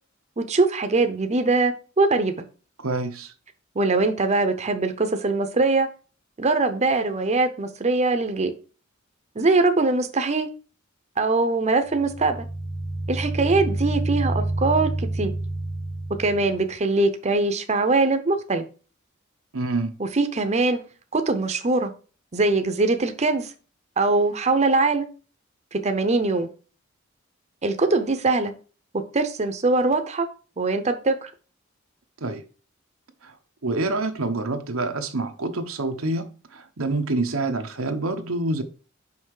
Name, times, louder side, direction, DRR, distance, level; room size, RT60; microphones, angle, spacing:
voice 1, 0.4-2.5 3.8-5.9 6.4-8.5 9.4-10.5 11.2-12.4 13.1-15.3 16.2-18.6 20.0-20.8 21.1-21.9 22.3-23.5 24.0-25.1 25.7-26.5 27.6-28.5 28.9-30.3 30.6-31.3, right 3 dB, 35° right, 0.7 m, -22 dB
voice 2, 2.8-3.3 19.5-19.9 32.2-32.4 33.2-33.3 33.6-38.6, right 2 dB, 90° right, 1.0 m, -27 dB
sound 1, 11.9-16.7, right 1 dB, 10° left, 0.6 m, -28 dB
5.6 x 5.4 x 4.7 m
head